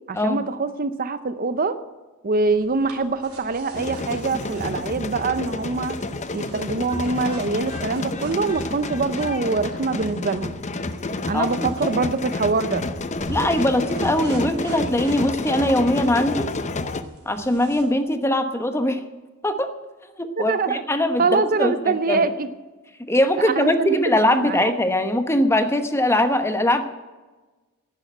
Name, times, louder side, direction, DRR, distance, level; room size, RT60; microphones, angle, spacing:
voice 1, 0.1-1.8 2.2-6.0 6.3-10.5 11.3-12.9 20.4-20.8 21.2-22.5 23.4-24.6, right 4 dB, 40° right, 12 dB, 0.6 m, -24 dB
sound 1, 2.3-17.8, right 1 dB, 80° right, 3.4 m, -42 dB
sound 2, 3.7-17.0, left 2 dB, 30° left, 0.7 m, -30 dB
voice 2, 11.3-11.9 13.3-16.5 17.3-19.0 19.4-19.7 20.2-21.7 22.1-22.2 23.0-26.8, left 1 dB, 10° left, 8 dB, 1.0 m, -21 dB
10.5 x 10.5 x 9.2 m, 1.2 s
head